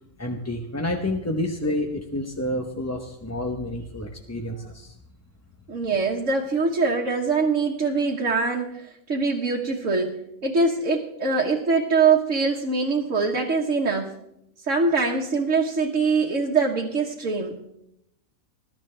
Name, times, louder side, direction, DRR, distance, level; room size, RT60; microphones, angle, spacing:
voice 1, 0.2-4.9, left 1 dB, 15° left, 3 dB, 0.7 m, -29 dB
voice 2, 5.7-14.1 14.7-17.6, right 4 dB, 65° right, -1 dB, 1.6 m, -23 dB
20.5 x 12.5 x 3.3 m, 0.79 s
omnidirectional pair, 1.4 m